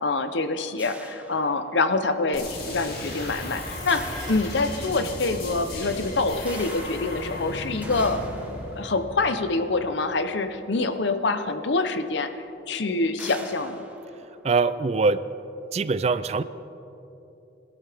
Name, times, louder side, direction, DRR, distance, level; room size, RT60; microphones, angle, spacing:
voice 1, 0.0-8.2 8.8-12.3 12.7-13.8, left 3 dB, 75° left, 9 dB, 0.8 m, -26 dB
sound 1, 0.8-2.1 3.9-5.2 6.5-10.9 11.8-11.9 12.3-12.5 13.2-15.2, right 1 dB, 10° right, 0.9 m, -46 dB
sound 2, 2.3-9.9, left 1 dB, 55° left, 2.8 m, -36 dB
Dishes pots and pans, 3.7-8.1 9.0-9.4 9.8-10.6 10.9-11.0, equal, 20° left, 2.6 m, -46 dB
voice 2, 14.4-15.3 15.7-16.4, right 4 dB, 35° right, 14 dB, 0.3 m, -23 dB
21.0 x 12.0 x 3.5 m, 3.0 s
head